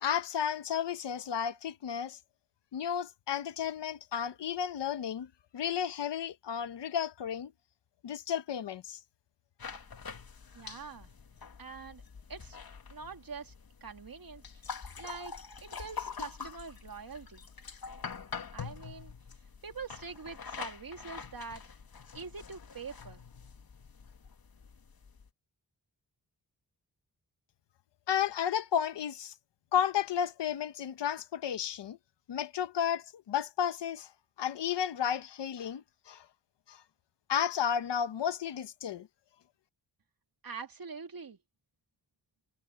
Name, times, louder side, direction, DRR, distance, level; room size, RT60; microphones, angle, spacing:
voice 1, 0.0-2.2 2.7-7.5 8.0-9.0 28.1-29.3 29.7-32.0 32.3-34.1 34.4-36.2 36.7-36.8 37.3-39.1, left 9 dB, 90° left, 1.3 m, -33 dB
sound 1, 9.6-25.3, left 6 dB, 60° left, 2.8 m, -45 dB
voice 2, 10.5-11.1 11.6-12.0 12.3-12.6 12.9-13.5 13.8-14.4 15.0-17.4 18.5-19.1 19.6-21.6 22.1-23.2 40.4-41.4, right 5 dB, 55° right, 2.8 m, -44 dB
cardioid pair, 50°, 41 cm